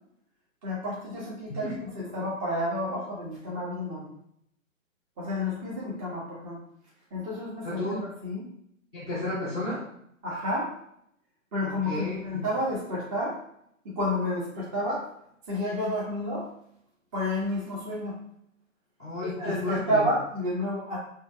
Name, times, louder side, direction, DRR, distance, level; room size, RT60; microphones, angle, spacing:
voice 1, 0.6-4.1 5.2-6.6 7.1-7.8 8.2-8.4 9.1-9.2 10.2-10.7 11.5-13.4 13.8-15.0 15.5-16.5 17.1-18.2 19.4-21.0, left 1 dB, 25° right, -6 dB, 1.0 m, -30 dB
voice 2, 7.6-8.0 8.9-9.8 11.6-12.4 19.0-20.0, left 1 dB, 5° right, -13 dB, 0.3 m, -33 dB
4.2 x 2.8 x 2.4 m, 0.72 s
figure-of-eight pair, 125°, 40 cm